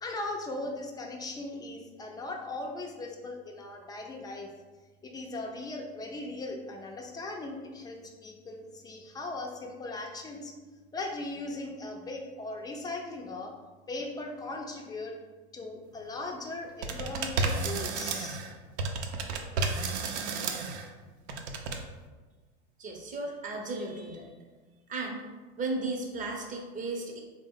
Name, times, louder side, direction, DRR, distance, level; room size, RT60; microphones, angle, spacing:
voice 1, 0.0-4.5 5.0-10.5 10.9-13.5 13.9-15.1 15.5-18.4, left 2 dB, 10° left, 1 dB, 0.4 m, -38 dB
sound 1, 16.8-18.5 18.8-20.9 21.3-21.8, right 4 dB, 70° right, 0.6 m, -31 dB
voice 2, 22.8-24.3 24.9-25.2 25.6-27.2, right 2 dB, 25° right, 1 dB, 0.7 m, -35 dB
3.8 x 2.1 x 3.6 m, 1.3 s
hypercardioid pair, 100°, 34 cm